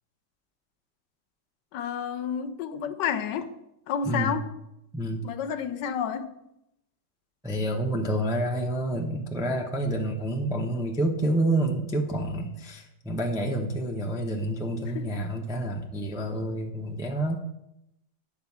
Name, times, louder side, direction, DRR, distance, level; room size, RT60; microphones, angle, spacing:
voice 1, 1.7-3.5 3.9-4.5 5.2-6.3 14.9-15.2, left 7 dB, 80° left, 1.3 m, -30 dB
voice 2, 4.1-4.4 4.9-5.2 7.4-17.4, right 1 dB, 5° right, 0.4 m, -28 dB
9.3 x 4.1 x 7.1 m
omnidirectional pair, 1.9 m